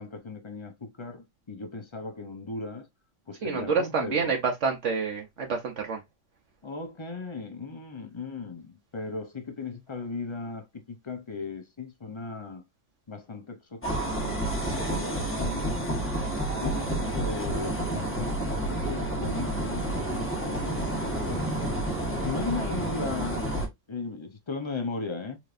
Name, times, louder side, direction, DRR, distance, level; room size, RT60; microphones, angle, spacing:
voice 1, 0.0-2.9 3.3-4.4 6.6-12.6 13.1-16.0 16.5-21.6 22.2-23.5 23.9-25.4, left 4 dB, 30° left, 0.6 m, -37 dB
voice 2, 3.4-6.0 14.6-15.0, right 5 dB, 65° right, 1.1 m, -28 dB
sound 1, 13.8-23.7, right 1 dB, 10° left, 1.1 m, -30 dB
4.2 x 3.3 x 2.5 m
omnidirectional pair, 1.3 m